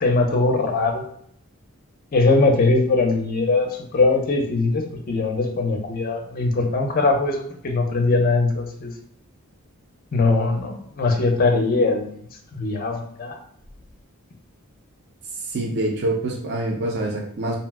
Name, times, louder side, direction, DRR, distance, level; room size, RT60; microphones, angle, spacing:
voice 1, 0.0-1.0 2.1-8.9 10.1-12.2 12.5-13.4, left 3 dB, 40° left, 3 dB, 0.4 m, -21 dB
voice 2, 15.5-17.6, right 1 dB, 50° right, 0 dB, 0.5 m, -25 dB
2.6 x 2.0 x 3.3 m, 0.65 s
head